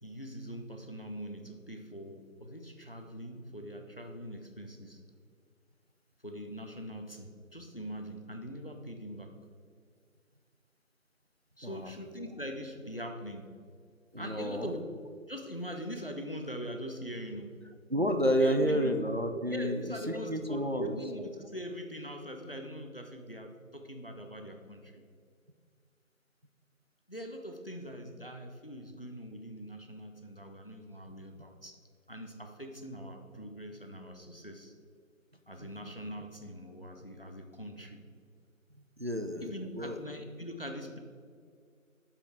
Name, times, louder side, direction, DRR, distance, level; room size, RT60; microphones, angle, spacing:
voice 1, 0.0-5.0 6.2-9.4 11.6-13.5 14.2-14.9 15.3-17.6 18.3-18.9 19.5-25.0 27.1-31.8 32.1-34.7 35.5-38.0 39.4-41.0, equal, 45° left, 5 dB, 0.7 m, -42 dB
voice 2, 14.1-14.7 17.9-21.0 35.6-35.7 39.0-40.0, equal, 50° right, 6 dB, 0.5 m, -30 dB
6.9 x 5.6 x 4.7 m, 2.1 s
figure-of-eight pair, 175°, 41 cm